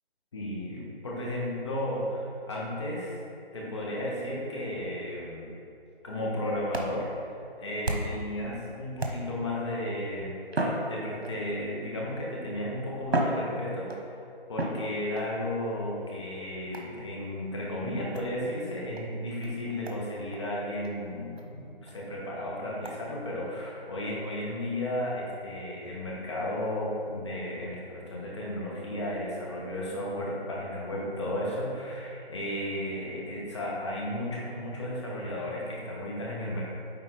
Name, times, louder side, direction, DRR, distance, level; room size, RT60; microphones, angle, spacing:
voice 1, 0.3-3.2 3.5-5.5 6.0-7.1 7.6-14.1 14.5-36.6, left 1 dB, 30° left, -5 dB, 1.2 m, -34 dB
sound 1, 6.2-8.3 9.0-9.6 10.5-11.6 12.4-12.5 13.0-14.1 14.6-15.3 16.7-17.0 18.1-18.3 19.0-19.1 19.4-19.5 19.9-20.0 20.3-20.4 20.8-20.9 21.4-21.5 21.9-22.0 22.8-23.0, right 1 dB, 85° right, 1.1 m, -33 dB
9.6 x 3.7 x 3.8 m, 2.6 s
figure-of-eight pair, 160°, 31 cm